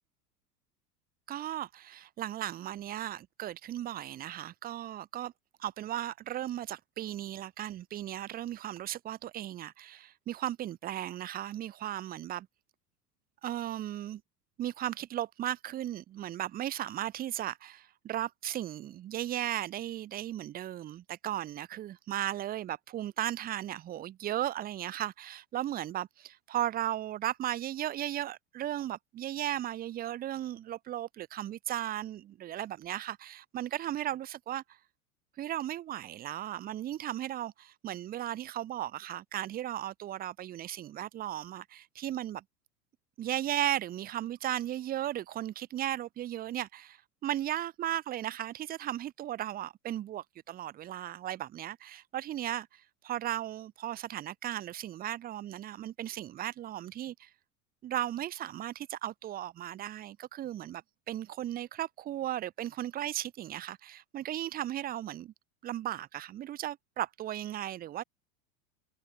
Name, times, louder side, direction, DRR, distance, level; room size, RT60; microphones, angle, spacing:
voice 1, 1.3-5.3 5.6-12.5 13.4-14.2 14.6-34.8 35.4-42.4 43.2-57.3 57.8-65.3 65.6-68.0, right 12 dB, 20° right, 0.6 m, -36 dB
figure-of-eight pair, 85°, 47 cm